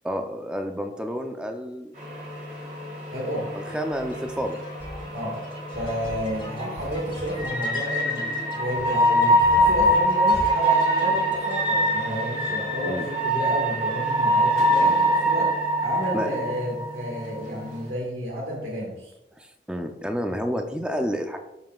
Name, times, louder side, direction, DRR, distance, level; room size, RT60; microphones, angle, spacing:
voice 1, 0.0-1.9 3.5-4.6 12.4-13.1 14.8-15.0 16.1-16.4 19.4-21.4, equal, 5° right, 5 dB, 0.6 m, -30 dB
sound 1, 2.0-17.9, right 1 dB, 45° right, 2.7 m, -24 dB
voice 2, 3.1-3.5 5.1-5.4 5.8-19.1, equal, 80° right, -4 dB, 1.8 m, -31 dB
sound 2, 3.7-11.9, left 1 dB, 30° left, 1.7 m, -40 dB
12.5 x 5.6 x 2.4 m, 0.90 s
head